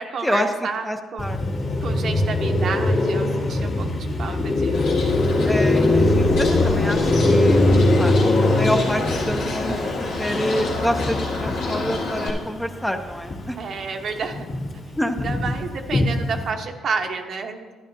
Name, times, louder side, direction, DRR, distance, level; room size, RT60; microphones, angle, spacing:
voice 1, 0.0-1.4 1.8-4.8 13.6-14.6 15.2-17.7, right 5 dB, 60° right, 4 dB, 0.9 m, -30 dB
voice 2, 0.8-1.4 5.5-7.6 8.0-8.1 8.4-9.8 10.2-13.6 15.0-15.2, equal, 5° left, 5 dB, 0.7 m, -27 dB
Car passing by, 1.2-13.7 14.0-16.5, left 2 dB, 55° left, 2.2 m, -21 dB
Bird, 4.7-12.3, left 2 dB, 90° left, 2.0 m, -29 dB
12.0 x 10.5 x 2.7 m, 1.4 s
cardioid pair, 90°, 0 cm